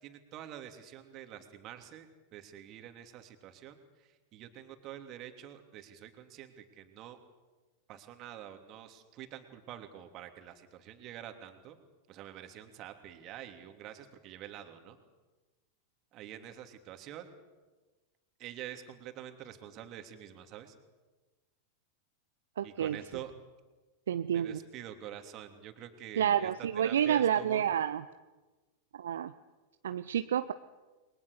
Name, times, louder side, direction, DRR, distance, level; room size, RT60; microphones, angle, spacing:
voice 1, 0.0-7.2 7.9-11.8 12.1-15.0 16.1-17.3 18.4-20.7 22.6-23.3 24.3-27.7, right 11 dB, 35° right, 6 dB, 3.1 m, -47 dB
voice 2, 22.6-23.0 24.1-24.6 26.2-28.0 28.9-29.3 29.8-30.5, right 9 dB, 65° right, 11 dB, 0.8 m, -29 dB
30.0 x 22.5 x 6.8 m, 1.2 s
figure-of-eight pair, 90°, 0 cm